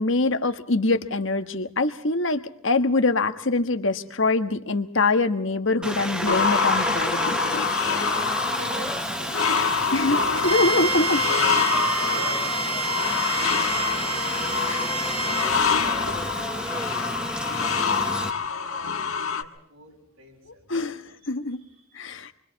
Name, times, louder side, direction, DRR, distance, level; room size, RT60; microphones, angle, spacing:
voice 1, 0.0-7.4 9.9-10.2 10.4-11.2 13.0-13.2 14.7-14.9 15.4-15.5 20.7-21.6 21.9-22.3, left 3 dB, 60° left, 8 dB, 1.5 m, -24 dB
Aircraft, 5.8-18.3, equal, 5° right, 1.2 m, -31 dB
sound 1, 6.3-19.4, left 5 dB, 80° left, 1.5 m, -26 dB
voice 2, 8.5-10.4 10.7-16.1 16.4-18.9 19.4-20.9 21.6-21.9, right 1 dB, 80° right, 0 dB, 7.8 m, -45 dB
Bowed string instrument, 10.4-15.5, right 2 dB, 25° right, 1.5 m, -29 dB
28.0 x 24.5 x 4.1 m, 0.70 s
head